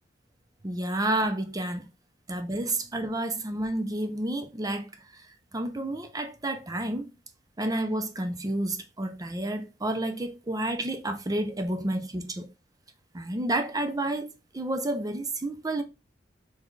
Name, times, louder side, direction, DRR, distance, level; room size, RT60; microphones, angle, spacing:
voice 1, 0.6-1.9 2.3-4.9 5.5-7.1 7.6-12.5 13.1-15.8, right 1 dB, 20° right, 0.6 m, -30 dB
4.0 x 3.4 x 3.9 m
head